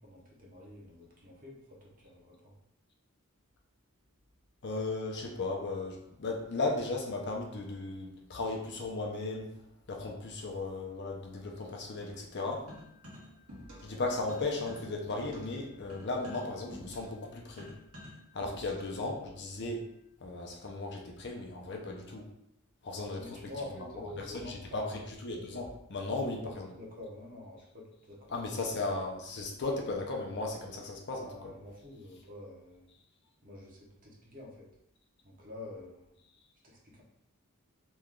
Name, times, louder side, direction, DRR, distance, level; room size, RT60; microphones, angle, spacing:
voice 1, 0.0-2.5 23.1-25.0 26.0-28.7 31.2-32.9 33.4-34.7 35.2-36.1 36.6-37.0, left 2 dB, 40° right, -3 dB, 0.9 m, -47 dB
voice 2, 4.6-9.6 9.9-12.7 13.8-17.7 18.3-19.9 20.2-22.3 22.8-23.2 24.3-24.8 25.2-26.7 28.3-31.5, left 3 dB, 50° left, 1 dB, 0.6 m, -36 dB
sound 1, 12.7-14.0 14.3-19.0, equal, 70° right, 1.1 m, -49 dB
3.0 x 2.3 x 3.6 m, 0.77 s
head